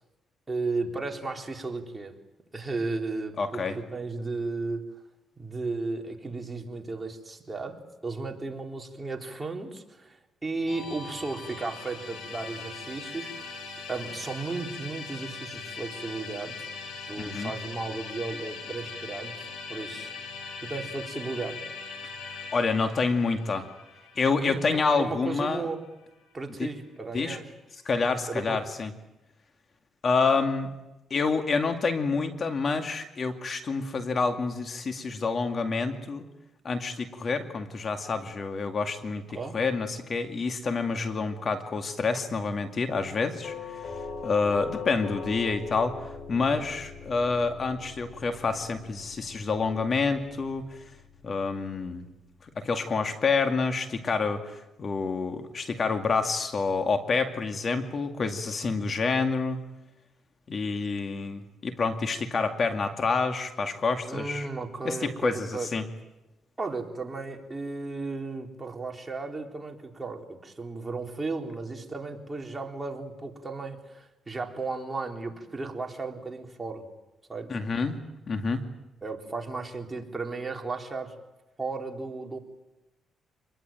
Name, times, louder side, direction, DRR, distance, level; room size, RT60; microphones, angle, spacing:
voice 1, 0.5-2.1 2.5-4.8 5.4-13.6 13.9-16.7 17.1-20.1 20.6-21.6 24.4-25.8 26.3-27.5 28.3-28.6 39.3-39.6 64.1-65.7 66.6-76.8 77.3-77.6 79.0-81.1 81.6-82.4, right 3 dB, 20° right, 2 dB, 3.9 m, -35 dB
voice 2, 3.4-3.8 17.2-17.5 22.5-23.7 24.2-25.7 26.6-26.7 27.1-27.4 27.8-28.9 30.0-30.7 31.1-36.2 36.6-39.2 39.5-43.8 44.2-46.0 46.3-50.9 51.2-52.1 52.6-59.6 60.5-64.5 64.8-65.8 77.5-78.0 78.3-78.6, left 4 dB, 45° left, 6 dB, 2.3 m, -28 dB
Musical instrument, 10.7-25.8, left 4 dB, 85° left, 7.9 m, -41 dB
Doorbell, 43.4-52.3, left 5 dB, 65° left, 7.1 m, -42 dB
27.0 x 21.5 x 9.2 m, 0.98 s
cardioid pair, 90°, 0 cm